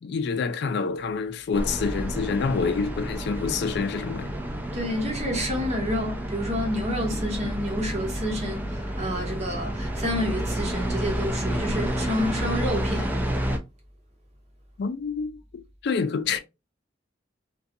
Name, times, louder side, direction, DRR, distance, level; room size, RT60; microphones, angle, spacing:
voice 1, 0.0-4.3 14.8-16.4, left 5 dB, 60° left, 0.3 m, -27 dB
sound 1, 1.5-13.6, right 1 dB, 10° right, 0.4 m, -30 dB
voice 2, 4.7-13.1, equal, 35° right, 1.0 m, -29 dB
2.4 x 2.2 x 2.6 m
head